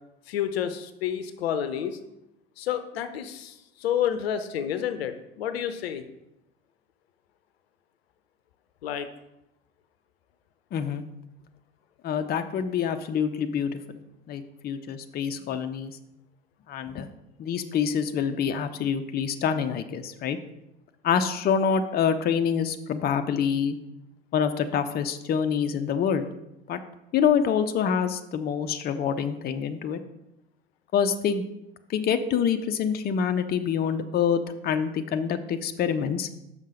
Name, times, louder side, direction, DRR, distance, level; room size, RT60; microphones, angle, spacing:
voice 1, 0.3-2.0 2.6-3.5 3.8-6.1 8.8-9.1, left 9 dB, 70° left, 10 dB, 0.7 m, -29 dB
voice 2, 10.7-11.0 12.0-13.8 14.3-16.0 16.7-17.1 17.4-20.4 21.0-23.8 24.3-26.3 26.7-26.8 27.1-30.0 30.9-31.4 31.9-36.3, left 7 dB, 30° left, 8 dB, 0.6 m, -26 dB
6.5 x 5.6 x 5.0 m, 0.88 s
figure-of-eight pair, 70°, 31 cm